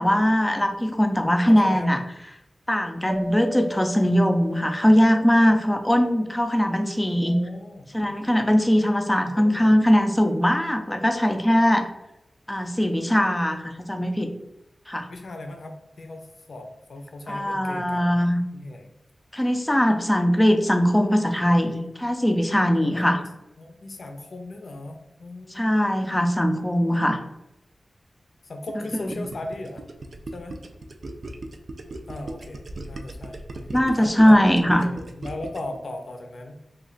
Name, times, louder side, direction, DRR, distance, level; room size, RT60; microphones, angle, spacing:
voice 1, 0.0-2.0 2.7-7.4 7.9-11.8 12.5-14.3 14.9-15.1 17.3-18.4 19.3-23.2 25.5-27.2 29.1-29.2 33.7-34.8, equal, 10° left, 5 dB, 0.4 m, -20 dB
voice 2, 1.5-2.0 7.1-7.9 9.2-9.8 15.1-18.2 18.5-18.9 22.9-23.3 23.6-25.7 28.4-29.9 30.3-30.6 32.1-33.4 33.9-36.6, left 2 dB, 70° left, 4 dB, 0.5 m, -38 dB
sound 1, 3.1-6.1, right 1 dB, 80° right, 0.9 m, -38 dB
Gurgling, 28.7-35.8, right 2 dB, 60° right, 0.4 m, -37 dB
3.1 x 2.3 x 3.8 m, 0.87 s
wide cardioid pair, 105°, 0 cm